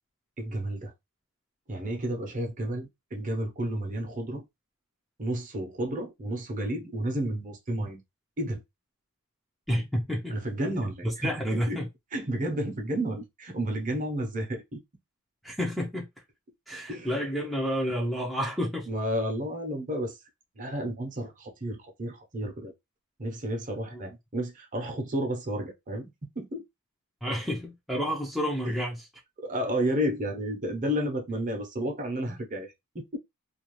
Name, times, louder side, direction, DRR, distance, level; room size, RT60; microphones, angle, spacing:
voice 1, 0.4-0.9 1.7-4.4 5.2-8.0 8.4-8.6 10.3-11.8 12.1-14.8 16.9-17.2 18.9-20.2 20.6-22.7 23.2-26.1 26.4-26.6 28.6-28.7 29.4-33.2, right 1 dB, 35° right, 0.8 m, -31 dB
voice 2, 9.7-10.3 11.0-11.9 15.4-16.1 16.7-18.9 23.9-24.0 27.2-29.1, equal, ahead, 0.5 m, -30 dB
2.5 x 2.3 x 3.0 m
head